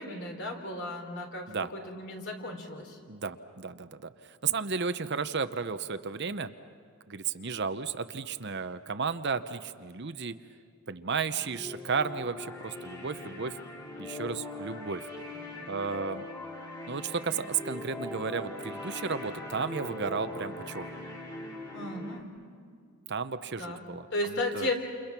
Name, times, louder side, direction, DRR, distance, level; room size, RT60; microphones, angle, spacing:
voice 1, 0.0-3.0 21.7-22.3 23.6-23.8 24.1-24.7, left 1 dB, 55° left, 3 dB, 3.7 m, -34 dB
voice 2, 3.1-4.1 4.4-6.5 7.1-10.3 10.9-13.6 14.0-15.1 15.7-16.2 16.9-21.1 23.1-24.7, right 5 dB, 50° right, 10 dB, 0.8 m, -33 dB
sound 1, 11.1-22.2, left 2 dB, 10° left, 2.6 m, -41 dB
29.0 x 29.0 x 6.0 m, 2.3 s
head